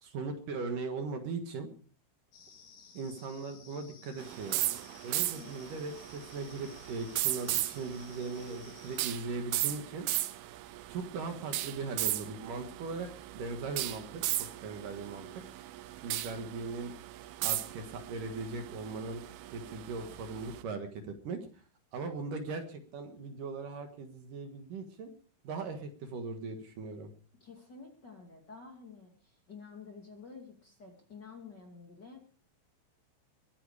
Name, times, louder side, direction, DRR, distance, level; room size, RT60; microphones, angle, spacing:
voice 1, 0.0-1.7 2.9-4.6 5.0-10.1 10.9-13.1 13.3-15.4 16.0-16.9 17.4-19.2 19.5-21.7 21.9-25.1 25.4-27.1, right 4 dB, 65° right, 6 dB, 3.0 m, -39 dB
sound 1, 2.3-9.1, left 6 dB, 60° left, 3.6 m, -56 dB
sound 2, 4.2-20.6, right 15 dB, 80° right, 2.7 m, -37 dB
voice 2, 27.4-32.3, left 5 dB, 30° left, 2 dB, 2.6 m, -50 dB
23.0 x 9.9 x 4.9 m, 0.43 s
omnidirectional pair, 4.5 m